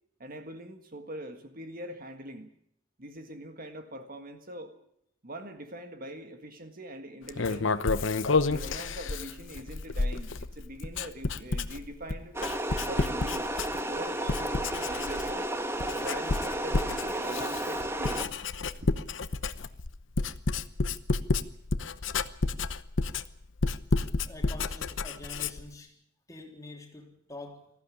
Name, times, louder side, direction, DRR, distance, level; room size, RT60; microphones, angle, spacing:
voice 1, 0.2-2.5 3.0-4.7 5.2-7.7 8.4-12.3 12.9-13.5 13.9-15.5 15.9-18.3 18.8-18.9, right 1 dB, 45° right, 7 dB, 1.8 m, -42 dB
Writing, 7.3-14.0 14.3-15.5 15.8-25.7, left 3 dB, 70° left, 0.9 m, -30 dB
sound 1, 12.3-18.3, right 1 dB, 15° right, 1.3 m, -33 dB
voice 2, 24.3-26.0 26.3-27.7, left 2 dB, 15° left, 2 dB, 3.5 m, -46 dB
20.0 x 14.5 x 10.0 m, 0.70 s
head